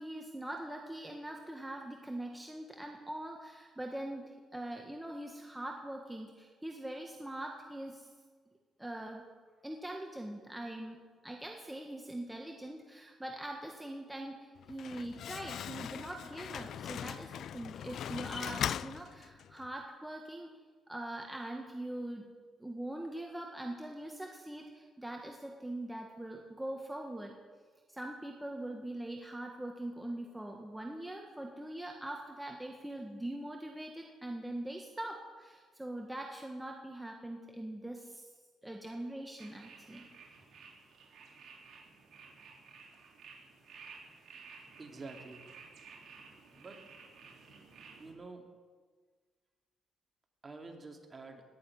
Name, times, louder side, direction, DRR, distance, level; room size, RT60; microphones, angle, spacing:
voice 1, 0.0-8.1 8.8-9.2 9.6-20.5 20.9-22.2 22.6-27.3 27.9-38.3 38.6-40.0, right 1 dB, 10° right, 1 dB, 1.6 m, -42 dB
Slam, 14.6-19.7, left 9 dB, 70° left, 0.4 m, -40 dB
sound 1, 39.4-48.1, right 5 dB, 65° right, 3.3 m, -54 dB
voice 2, 44.8-45.5 46.6-46.8 48.0-48.5 50.4-51.4, right 3 dB, 30° right, 3 dB, 2.6 m, -48 dB
18.0 x 7.1 x 9.8 m, 1.5 s
cardioid pair, 90°, 0 cm